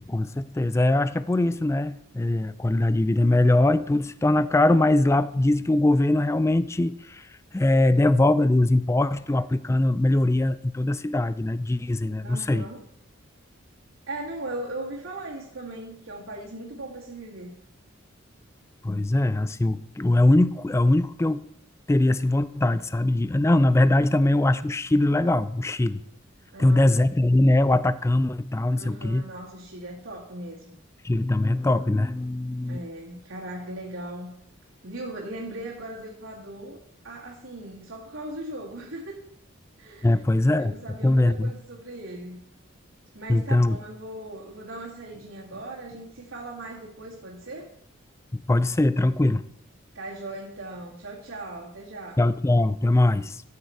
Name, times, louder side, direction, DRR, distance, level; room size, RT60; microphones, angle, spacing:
voice 1, 0.0-12.6 18.8-21.4 21.9-26.0 26.6-29.2 31.0-32.8 40.0-41.5 43.3-43.8 48.3-49.4 52.2-53.4, left 1 dB, 15° left, 15 dB, 0.3 m, -22 dB
voice 2, 12.0-12.8 14.1-17.6 26.5-26.9 28.8-30.8 32.7-34.3 34.8-36.8 37.0-39.2 39.8-40.1 40.6-42.4 43.1-47.7 49.9-52.2, right 1 dB, 80° right, -6 dB, 2.2 m, -38 dB
14.0 x 6.7 x 4.5 m, 0.70 s
head